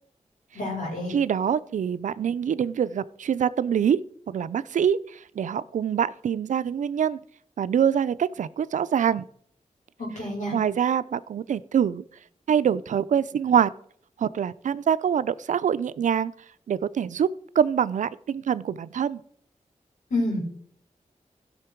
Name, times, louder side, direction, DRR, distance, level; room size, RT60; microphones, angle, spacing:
voice 1, 0.5-1.1 10.0-10.5 20.1-20.4, left 1 dB, 85° left, -1 dB, 4.8 m, -28 dB
voice 2, 1.1-7.2 7.6-9.2 10.5-12.0 12.5-13.7 14.2-16.3 16.7-17.3 17.6-19.2, right 8 dB, 80° right, 16 dB, 0.4 m, -25 dB
16.0 x 5.8 x 4.5 m, 0.63 s
wide cardioid pair, 100°, 13 cm